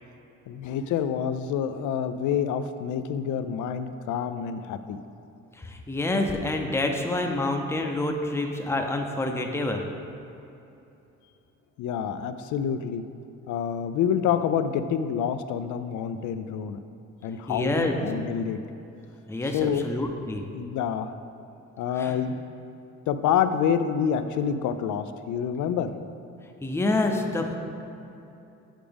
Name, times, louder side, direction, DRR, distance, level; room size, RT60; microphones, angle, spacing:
voice 1, 0.5-5.0 11.8-13.0 13.5-16.8 17.2-18.6 19.5-19.9 20.5-21.1 21.8-22.4 23.1-25.9, left 8 dB, 75° left, 10 dB, 0.5 m, -27 dB
voice 2, 5.6-9.8 17.5-17.9 19.3-20.4 22.0-22.2 26.6-27.6, left 2 dB, 10° left, 3 dB, 0.6 m, -27 dB
8.9 x 4.9 x 3.4 m, 2.8 s
cardioid pair, 90°, 30 cm